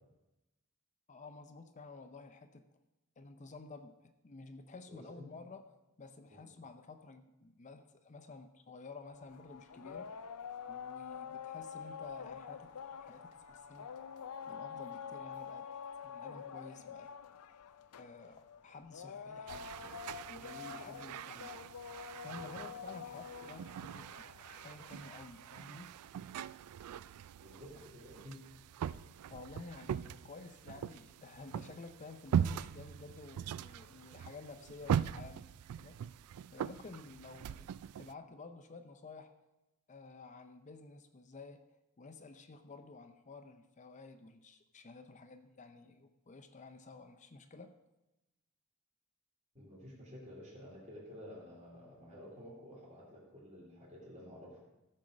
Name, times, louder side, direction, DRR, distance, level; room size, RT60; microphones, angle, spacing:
voice 1, 1.1-2.7 3.2-10.1 10.7-13.9 14.5-15.7 16.0-17.1 18.0-20.0 20.3-21.6 22.2-25.9 27.8-27.9 29.3-36.0 36.5-39.3 39.9-41.6 42.0-47.7, left 3 dB, 35° left, 8 dB, 0.6 m, -52 dB
voice 2, 4.9-5.3 6.3-6.4 27.4-28.4 49.5-54.6, left 1 dB, 30° right, -4 dB, 2.7 m, -51 dB
sound 1, 9.1-25.5, left 7 dB, 90° left, 0.5 m, -47 dB
sound 2, 19.5-38.1, right 8 dB, 80° right, 0.3 m, -41 dB
14.5 x 6.5 x 5.0 m, 0.99 s
head